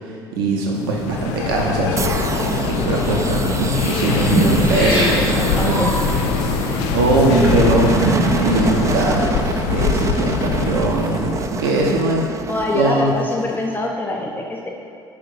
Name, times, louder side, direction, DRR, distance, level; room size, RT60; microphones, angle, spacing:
voice 1, 0.1-5.8 6.4-6.5 6.9-8.0 8.4-9.3 9.7-12.3 12.7-13.1, right 2 dB, 70° right, -1 dB, 0.8 m, -21 dB
sound 1, 0.9-11.7, left 8 dB, 60° left, 0.4 m, -23 dB
sound 2, 2.0-13.8, right 5 dB, 25° right, 0.4 m, -27 dB
sound 3, 4.0-9.3, right 1 dB, 90° left, 1.5 m, -22 dB
voice 2, 4.4-5.9 12.5-14.7, left 2 dB, 15° left, 0 dB, 0.7 m, -24 dB
5.0 x 4.8 x 5.7 m, 2.7 s
figure-of-eight pair, 55°, 12 cm